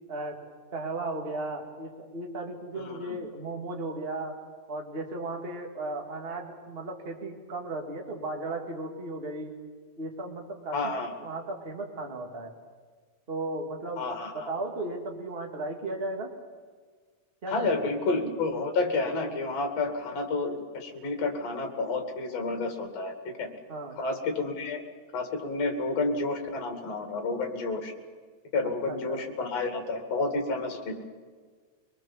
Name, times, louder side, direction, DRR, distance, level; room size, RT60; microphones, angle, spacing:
voice 1, 0.1-0.4 0.7-4.4 4.7-9.6 10.0-10.9 11.2-12.5 13.3-14.1 14.3-16.3 17.4-17.9 23.7-24.0 28.9-29.2, right 2 dB, 20° right, 3 dB, 2.1 m, -35 dB
voice 2, 2.7-3.2 10.7-11.1 14.0-14.5 17.5-23.5 24.0-24.8 25.1-27.9 28.5-30.9, left 3 dB, 60° left, 5 dB, 3.4 m, -30 dB
24.0 x 21.5 x 7.3 m, 1.5 s
omnidirectional pair, 3.3 m